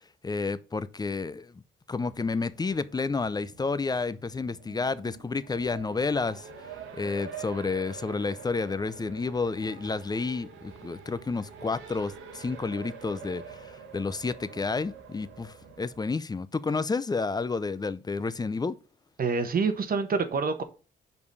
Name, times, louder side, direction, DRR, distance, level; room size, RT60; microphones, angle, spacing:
voice 1, 0.2-1.6 1.9-6.5 6.9-18.8, left 4 dB, 20° left, 0.5 m, -30 dB
Race car auto racing, 1.9-16.0, right 6 dB, 85° right, 1.5 m, -46 dB
voice 2, 19.2-20.6, right 4 dB, 50° right, 1.1 m, -26 dB
5.3 x 4.8 x 5.3 m
cardioid pair, 90°, 20 cm